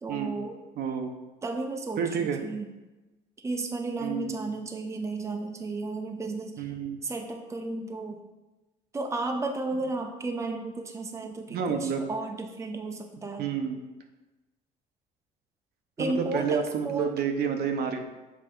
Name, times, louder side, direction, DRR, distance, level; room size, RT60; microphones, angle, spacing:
voice 1, 0.0-0.6 1.4-2.6 3.4-6.6 7.0-8.2 8.9-13.5 16.0-17.1, right 2 dB, 15° right, 4 dB, 0.6 m, -33 dB
voice 2, 0.8-1.1 2.0-2.4 4.0-4.5 6.6-7.0 11.5-12.0 13.4-13.8 16.0-18.0, right 7 dB, 70° right, 4 dB, 0.8 m, -29 dB
7.1 x 3.6 x 4.5 m, 1.1 s
cardioid pair, 110°, 17 cm